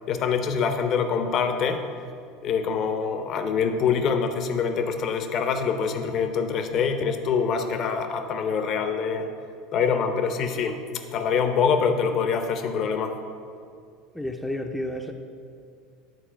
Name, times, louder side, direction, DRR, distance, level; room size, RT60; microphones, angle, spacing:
voice 1, 0.1-1.8 2.4-9.3 9.7-10.8 11.1-13.1, left 6 dB, 50° left, 7 dB, 0.7 m, -25 dB
voice 2, 14.1-15.1, left 1 dB, 5° left, 3 dB, 0.6 m, -31 dB
9.2 x 4.2 x 5.7 m, 2.3 s
hypercardioid pair, 80°, 0 cm